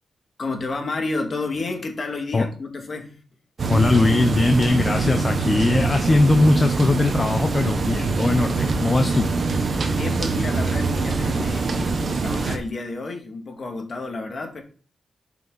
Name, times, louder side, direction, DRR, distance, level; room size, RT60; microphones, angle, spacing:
voice 1, 0.4-3.2 9.9-14.6, left 3 dB, 40° left, 2.1 m, -30 dB
sound 1, 3.6-12.6, right 4 dB, 45° right, 1.2 m, -24 dB
voice 2, 3.7-9.3, left 2 dB, 25° left, 0.8 m, -20 dB
11.5 x 5.9 x 4.1 m
wide cardioid pair, 125°, 0 cm